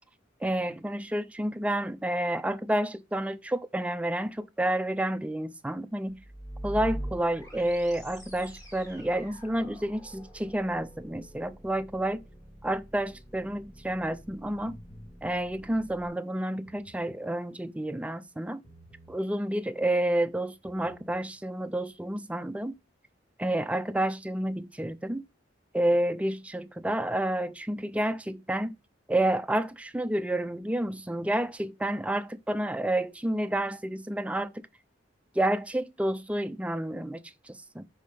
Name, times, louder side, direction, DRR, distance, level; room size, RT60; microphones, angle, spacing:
voice 1, 0.4-6.2 6.6-12.2 12.6-14.8 15.2-18.6 19.1-22.7 23.4-25.2 25.7-28.7 29.1-34.6 35.4-37.9, right 1 dB, 5° right, 0.3 m, -30 dB
sound 1, 6.1-16.1, right 1 dB, 20° left, 1.5 m, -44 dB
sound 2, 14.6-15.1 16.5-17.2 18.6-19.2 20.5-21.2, equal, 60° left, 2.0 m, -52 dB
5.4 x 3.3 x 5.3 m
head